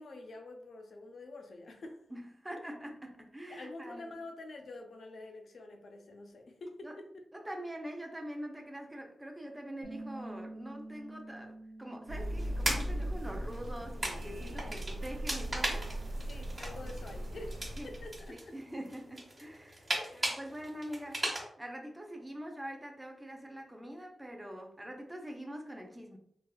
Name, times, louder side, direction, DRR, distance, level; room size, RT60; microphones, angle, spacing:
voice 1, 0.0-2.1 3.5-7.1 15.9-16.0 16.3-18.6 20.0-20.4, left 2 dB, 65° left, 4 dB, 0.5 m, -47 dB
voice 2, 2.1-4.1 6.8-7.0 7.3-15.9 17.8-17.9 18.3-26.2, equal, 10° right, 2 dB, 0.5 m, -44 dB
Bass guitar, 9.8-16.1, right 2 dB, 65° right, 1.2 m, -50 dB
sound 1, 12.1-18.3, right 1 dB, 90° right, 0.6 m, -39 dB
sound 2, 12.4-21.4, right 1 dB, 30° right, 1.0 m, -39 dB
3.3 x 2.4 x 2.2 m, 0.68 s
wide cardioid pair, 115°, 0 cm